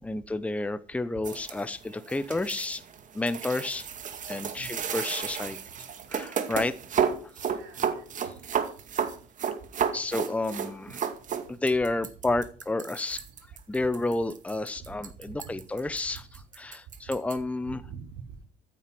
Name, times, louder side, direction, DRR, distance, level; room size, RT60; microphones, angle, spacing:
voice 1, 0.0-2.8 3.1-3.9 4.3-5.6 6.1-6.8 7.2-7.5 9.9-10.9 11.5-13.2 13.7-17.8, left 2 dB, 10° left, 12 dB, 0.9 m, -30 dB
sound 1, 1.2-17.4, right 7 dB, 50° right, 2.2 m, -32 dB
voice 2, 7.5-8.1 14.8-14.9 15.2-15.6 17.6-18.5, right 6 dB, 90° right, 4 dB, 5.4 m, -45 dB
14.5 x 9.3 x 6.1 m, 0.39 s
cardioid pair, 110°, 17 cm